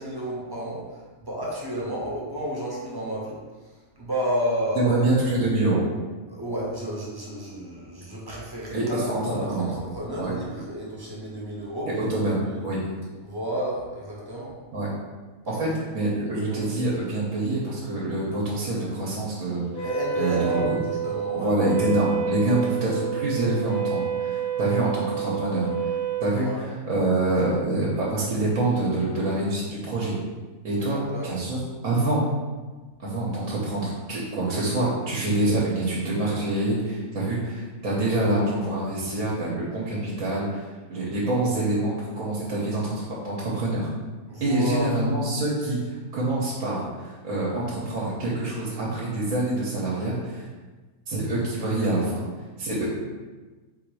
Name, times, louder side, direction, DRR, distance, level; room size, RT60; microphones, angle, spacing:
voice 1, 0.0-5.3 6.3-12.7 13.2-14.5 15.4-15.8 16.5-16.6 19.8-21.9 26.3-26.6 26.9-27.1 30.8-31.4 44.3-44.9, equal, 20° right, -6 dB, 0.7 m, -32 dB
voice 2, 4.7-5.8 8.7-9.7 10.2-10.3 11.9-12.8 14.7-14.9 15.5-15.7 15.9-19.9 20.2-20.8 21.3-25.9 26.2-30.1 30.6-31.0 31.2-32.2 33.0-43.9 44.4-50.5 51.1-52.2 52.6-52.9, right 2 dB, 70° right, -5 dB, 1.3 m, -26 dB
Wind instrument woodwind instrument, 19.7-26.3, right 8 dB, 70° left, 1.6 m, -29 dB
4.3 x 2.6 x 4.6 m, 1.3 s
omnidirectional pair, 1.5 m